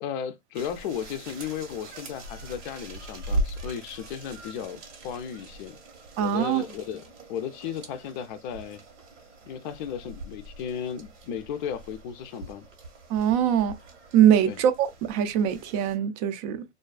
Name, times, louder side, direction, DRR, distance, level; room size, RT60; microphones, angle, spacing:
voice 1, 0.0-5.8 6.2-8.8 9.5-12.7 14.5-14.6, left 8 dB, 45° left, 0.4 m, -35 dB
sound 1, 0.5-16.0, right 1 dB, 80° right, 1.2 m, -39 dB
voice 2, 6.2-6.6 13.1-13.8 14.1-16.6, right 9 dB, 35° right, 0.4 m, -22 dB
2.5 x 2.3 x 2.2 m
hypercardioid pair, 125°, 35 cm